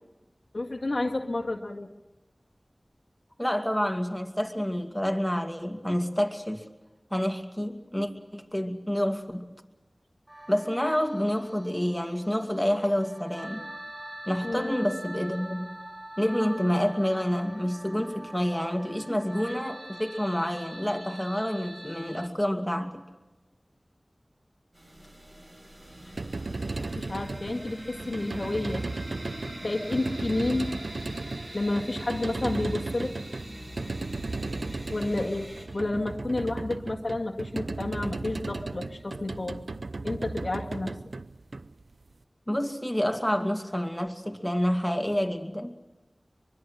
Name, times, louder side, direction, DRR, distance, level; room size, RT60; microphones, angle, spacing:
voice 1, 0.5-1.9 14.4-14.8 27.0-28.8 29.6-30.7 31.0-31.1 31.5-33.2 34.7-39.6 40.0-40.9, left 2 dB, 65° left, 2 dB, 1.8 m, -30 dB
voice 2, 3.4-6.6 7.1-9.4 10.5-13.6 14.3-15.7 16.2-23.0 42.5-45.8, equal, 10° left, 4 dB, 2.4 m, -28 dB
sound 1, 10.3-22.3, right 1 dB, 25° right, 1.5 m, -44 dB
sound 2, 24.7-35.7, right 1 dB, 60° right, 7.7 m, -43 dB
sound 3, 25.9-42.1, right 3 dB, 85° right, 0.7 m, -36 dB
24.0 x 22.5 x 6.4 m, 1.1 s
wide cardioid pair, 40°, 0 cm